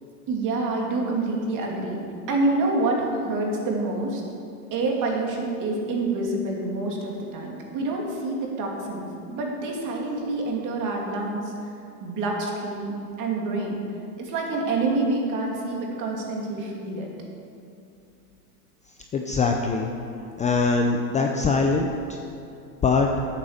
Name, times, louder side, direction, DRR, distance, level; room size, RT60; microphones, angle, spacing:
voice 1, 0.3-2.0 2.3-4.2 4.7-11.5 12.0-13.8 14.2-17.1, right 2 dB, 40° right, -1 dB, 2.7 m, -27 dB
voice 2, 19.1-19.9 20.4-21.9 22.8-23.1, left 4 dB, 15° left, 2 dB, 0.5 m, -22 dB
10.0 x 8.9 x 6.6 m, 2.6 s
supercardioid pair, 125°, 46 cm